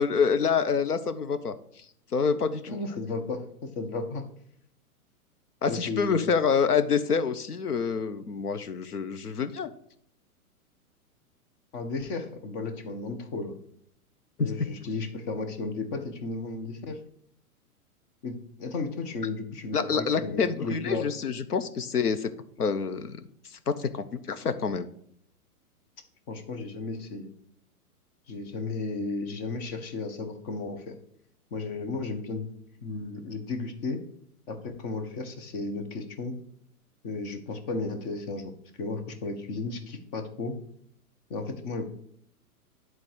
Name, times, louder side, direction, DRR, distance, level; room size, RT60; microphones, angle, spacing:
voice 1, 0.0-1.5 2.1-2.8 5.6-9.7 14.4-14.5 19.7-22.3 22.6-23.2 23.7-24.9, left 6 dB, 85° left, 10 dB, 0.9 m, -27 dB
voice 2, 2.7-4.2 5.7-6.3 11.7-13.5 14.4-17.0 18.2-21.1 26.3-27.3 28.3-30.9 31.5-32.5 32.8-34.0 34.5-36.4 37.0-38.5 38.8-40.6 41.3-41.8, left 3 dB, 40° left, 6 dB, 1.5 m, -34 dB
10.5 x 4.0 x 4.7 m, 0.66 s
figure-of-eight pair, 115°, 45 cm